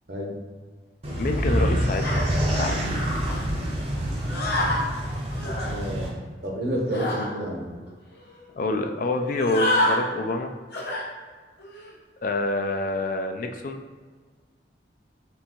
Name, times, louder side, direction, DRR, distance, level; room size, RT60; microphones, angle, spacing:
sound 1, 1.0-6.1, equal, 35° right, 0.7 m, -26 dB
voice 1, 1.2-2.3 2.6-3.0 8.6-10.5 12.2-13.8, left 2 dB, 45° left, 5 dB, 0.3 m, -27 dB
sound 2, 2.0-2.2 3.2-3.4 4.3-4.8 5.3-5.7 6.9-7.3 7.9-8.0 8.2-8.4 9.3-10.0 10.7-11.1 11.6-11.9, left 1 dB, 65° left, 0.9 m, -27 dB
voice 2, 5.6-6.1 6.4-7.8, right 1 dB, 65° right, -2 dB, 0.9 m, -29 dB
4.4 x 3.3 x 2.9 m, 1.5 s
head